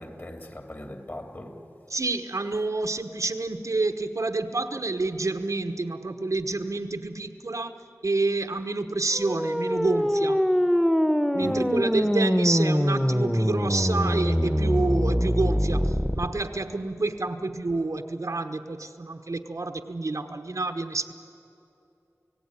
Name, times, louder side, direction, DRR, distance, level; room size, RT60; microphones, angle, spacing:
voice 1, 0.0-1.7 11.4-12.0, left 1 dB, 40° left, 3.0 m, -39 dB
voice 2, 1.9-10.4 11.3-21.1, right 3 dB, 80° right, 1.2 m, -28 dB
sound 1, 9.1-16.2, equal, 5° left, 1.2 m, -23 dB
30.0 x 16.5 x 9.9 m
wide cardioid pair, 50°, 5 cm